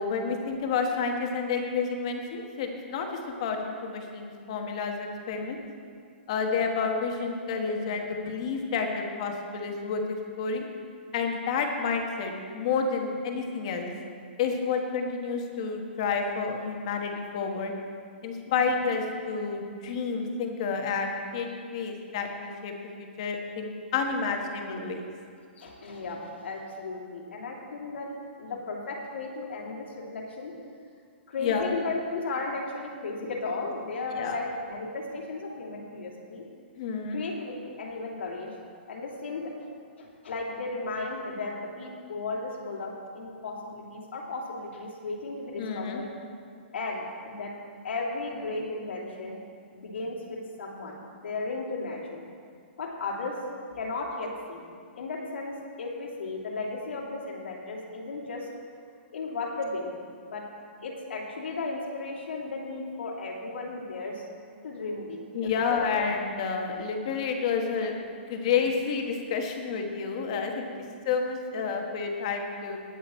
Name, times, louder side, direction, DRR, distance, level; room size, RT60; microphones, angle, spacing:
voice 1, 0.0-5.6 6.3-10.7 11.1-13.9 14.4-17.7 18.2-25.1 31.4-31.7 34.1-34.4 36.8-37.2 45.6-46.0 65.3-67.9 68.3-70.7 71.0-72.8, left 5 dB, 30° left, 3 dB, 1.3 m, -30 dB
voice 2, 25.6-28.1 28.4-30.5 31.3-36.4 37.1-38.5 38.9-39.7 40.0-46.1 46.7-47.5 47.8-49.4 49.7-52.2 52.8-53.3 53.8-54.7 55.0-58.5 59.1-59.9 60.2-60.4 60.8-64.2 64.6-65.8 70.8-70.9, left 3 dB, 85° left, -4 dB, 3.0 m, -35 dB
19.0 x 8.0 x 4.4 m, 2.2 s
hypercardioid pair, 180°, 6 cm